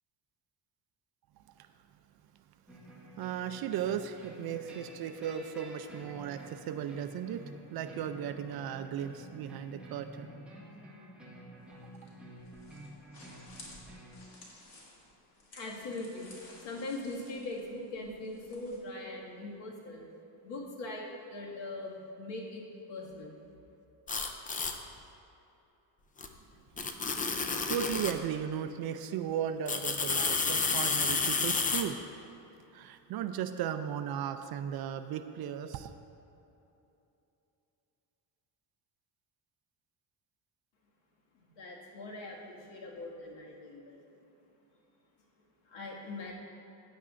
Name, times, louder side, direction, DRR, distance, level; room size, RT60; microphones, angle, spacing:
sound 1, 2.7-14.2, right 1 dB, ahead, 1.5 m, -50 dB
voice 1, 3.2-10.3 27.0-27.4 27.7-32.0 32.7-35.9, right 9 dB, 55° right, 9 dB, 0.5 m, -36 dB
sound 2, 11.6-18.8, left 2 dB, 55° left, 2.5 m, -55 dB
voice 2, 15.5-16.3 16.6-20.0 20.4-23.4 41.3-44.0 45.6-46.3, left 2 dB, 75° left, -2 dB, 2.0 m, -41 dB
sound 3, 24.1-24.8 26.2-26.3 26.8-28.2 29.7-31.8, left 4 dB, 20° left, 0.4 m, -30 dB
15.5 x 9.5 x 2.5 m, 3.0 s
cardioid pair, 165°, 44 cm